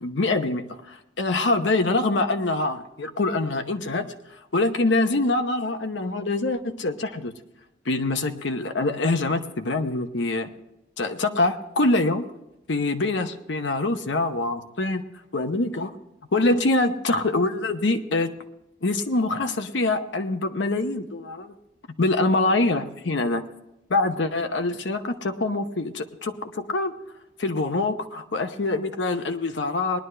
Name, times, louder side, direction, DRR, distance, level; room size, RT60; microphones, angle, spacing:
voice 1, 0.0-4.1 4.5-7.3 7.9-10.5 11.0-12.2 12.7-15.0 15.3-15.9 16.3-18.3 18.8-21.6 22.0-23.4 23.9-26.9 27.4-30.0, left 2 dB, 70° left, 7 dB, 0.9 m, -24 dB
19.5 x 11.0 x 3.3 m, 0.88 s
head